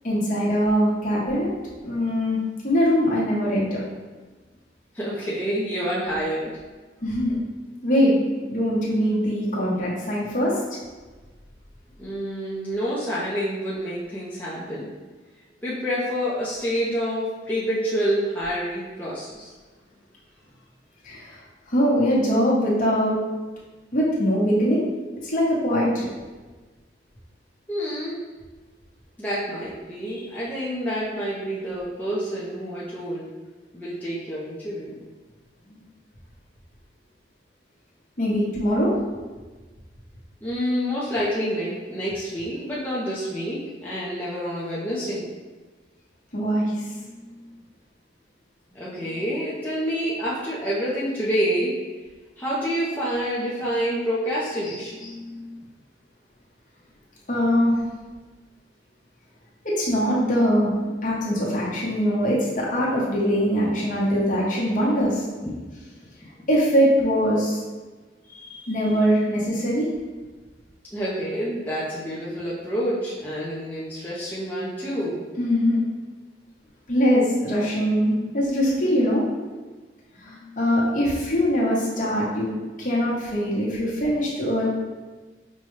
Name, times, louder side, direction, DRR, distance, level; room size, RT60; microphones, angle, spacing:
voice 1, 0.0-1.5 1.8-3.8 7.0-7.3 7.8-8.2 8.5-10.6 21.0-21.4 21.7-23.2 23.9-24.8 25.2-26.1 38.2-38.9 46.3-47.3 55.0-55.6 57.3-57.8 59.6-65.2 66.5-67.6 68.2-69.9 75.4-75.8 76.9-79.2 80.2-82.5 82.8-84.7, equal, 45° left, -6 dB, 1.0 m, -22 dB
voice 2, 4.9-6.6 12.0-14.9 15.6-19.5 27.7-28.2 29.2-33.3 33.7-35.0 40.4-45.3 48.7-51.8 52.4-55.1 64.8-64.9 65.4-65.5 70.9-75.2, equal, 10° left, -9 dB, 0.5 m, -28 dB
5.3 x 2.2 x 3.1 m, 1.3 s
head